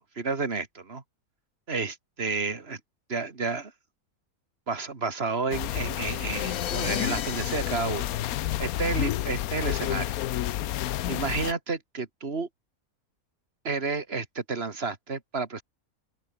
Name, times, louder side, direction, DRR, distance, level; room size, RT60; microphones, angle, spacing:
voice 1, 0.2-1.0 1.7-2.8 3.1-3.7 4.7-8.1 8.6-10.1 11.1-12.5 13.6-15.6, right 4 dB, 45° right, 2.6 m, -31 dB
sound 1, 5.5-11.5, left 13 dB, 80° left, 1.1 m, -30 dB
sound 2, 6.0-9.2, left 9 dB, 60° left, 1.2 m, -38 dB
open air
omnidirectional pair, 1.5 m